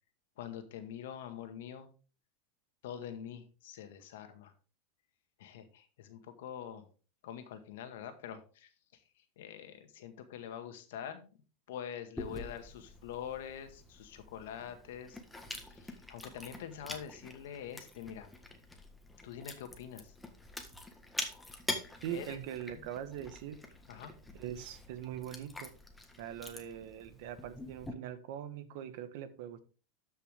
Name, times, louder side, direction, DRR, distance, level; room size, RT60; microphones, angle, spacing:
voice 1, 0.4-1.9 2.8-4.5 5.4-6.8 7.2-11.3 11.7-15.2 15.5-18.3 19.2-20.2 22.1-22.4 22.7-22.8 23.9-24.1, left 9 dB, 75° left, 8 dB, 1.8 m, -45 dB
Chewing mastication, 12.2-27.9, left 2 dB, 5° left, 1.6 m, -46 dB
voice 2, 22.0-23.6 24.4-25.7 26.2-29.6, right 10 dB, 65° right, 11 dB, 1.3 m, -42 dB
12.5 x 5.7 x 3.5 m, 0.36 s
supercardioid pair, 125°, 0 cm